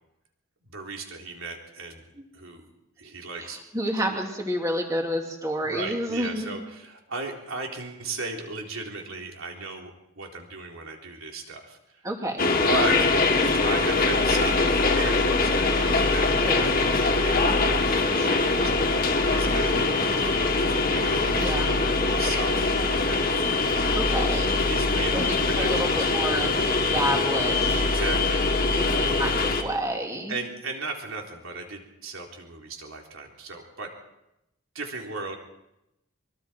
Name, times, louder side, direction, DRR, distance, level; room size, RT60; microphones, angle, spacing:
voice 1, 0.7-2.1 2.3-2.7 3.0-3.6 4.1-4.2 5.6-9.9 10.2-12.0 12.6-13.1 13.6-20.4 20.9-22.6 22.9-23.7 24.7-26.1 27.8-28.4 28.7-29.1 30.3-33.9 34.7-35.4, right 3 dB, 70° right, 1 dB, 3.8 m, -36 dB
voice 2, 3.4-6.5 12.0-12.5 16.4-16.8 21.3-21.7 23.9-24.6 25.1-27.8 28.8-30.4, equal, 15° right, 1 dB, 2.7 m, -30 dB
sound 1, 12.4-29.6, left 3 dB, 40° left, 2.2 m, -23 dB
24.0 x 23.5 x 4.6 m, 0.86 s
head